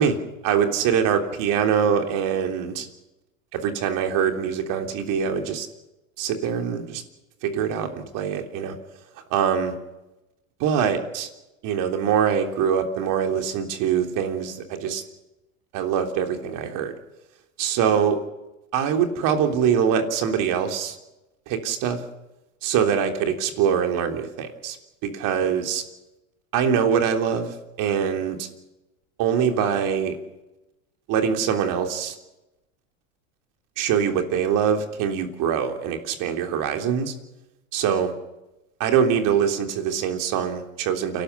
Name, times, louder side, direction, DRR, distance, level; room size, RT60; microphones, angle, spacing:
voice 1, 0.0-2.9 3.5-5.7 6.2-7.0 7.4-8.8 9.3-9.7 10.6-11.3 11.6-15.0 15.7-16.9 17.6-18.2 18.7-21.0 21.5-22.0 22.6-24.8 25.0-25.8 26.5-28.5 29.2-30.2 31.1-32.2 33.8-37.1 37.7-38.1 38.8-41.2, right 7 dB, 55° right, 4 dB, 3.5 m, -23 dB
29.0 x 12.5 x 8.4 m, 0.98 s
supercardioid pair, 110°, 39 cm